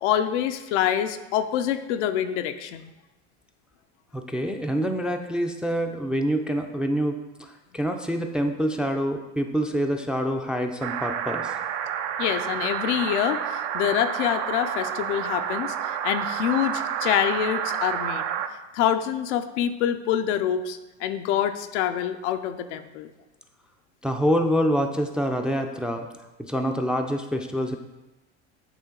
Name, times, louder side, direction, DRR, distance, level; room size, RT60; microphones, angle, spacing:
voice 1, 0.0-2.9 12.2-18.3 18.7-23.1, left 10 dB, 85° left, 8 dB, 0.6 m, -26 dB
voice 2, 4.1-7.2 7.7-11.5 24.0-26.1 26.4-27.8, equal, 5° right, 3 dB, 0.3 m, -26 dB
sound 1, 10.8-18.5, right 9 dB, 65° right, 0.5 m, -29 dB
8.3 x 3.2 x 3.8 m, 1.1 s
supercardioid pair, 100°, 35 cm